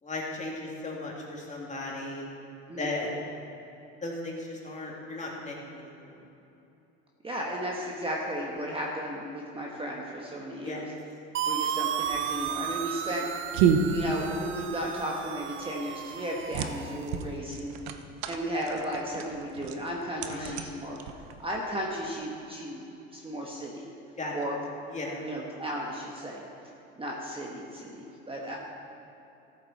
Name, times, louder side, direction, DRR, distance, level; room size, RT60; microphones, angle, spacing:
voice 1, 0.0-2.3 2.8-3.1 4.0-6.2 10.6-10.8 20.2-20.6 24.2-24.3 24.9-25.2, left 2 dB, 20° left, -3 dB, 2.6 m, -36 dB
voice 2, 7.2-10.8 11.4-13.3 13.8-17.7 18.2-21.0 21.4-22.8 23.1-23.9 24.3-24.6 25.2-26.4 27.0-28.6, equal, 15° right, -2 dB, 1.4 m, -34 dB
sound 1, 11.3-17.1, right 9 dB, 40° right, 0.5 m, -34 dB
sound 2, 12.0-21.6, right 6 dB, 80° right, 0.9 m, -31 dB
14.0 x 7.9 x 4.2 m, 2.9 s
supercardioid pair, 100°, 33 cm